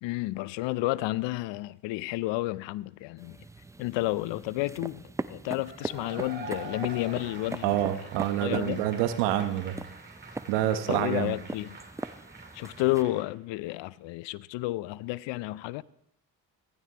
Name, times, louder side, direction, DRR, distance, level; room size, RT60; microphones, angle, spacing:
voice 1, 0.0-3.4 3.8-5.0 5.3-8.1 8.4-8.8 10.9-11.8 12.5-15.8, left 18 dB, 70° left, 0.6 m, -31 dB
sound 1, 3.2-13.0, right 2 dB, 5° right, 0.4 m, -41 dB
Cheering / Applause / Crowd, 5.6-13.3, right 2 dB, 20° right, 2.4 m, -45 dB
voice 2, 7.6-9.8 10.5-11.3, right 12 dB, 80° right, 1.1 m, -27 dB
15.0 x 15.0 x 2.9 m
hypercardioid pair, 60°, 46 cm